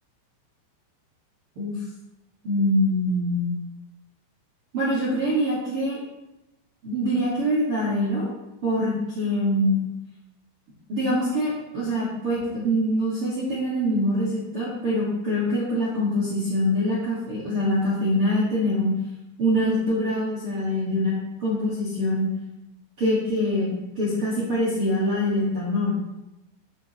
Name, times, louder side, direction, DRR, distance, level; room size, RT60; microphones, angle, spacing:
voice 1, 2.4-3.5 4.7-6.0 6.8-8.3 8.6-9.8 10.9-18.9 19.4-21.1 21.4-22.3 23.0-25.9, equal, 65° right, -8 dB, 1.3 m, -24 dB
13.0 x 5.3 x 3.0 m, 0.94 s
omnidirectional pair, 5.5 m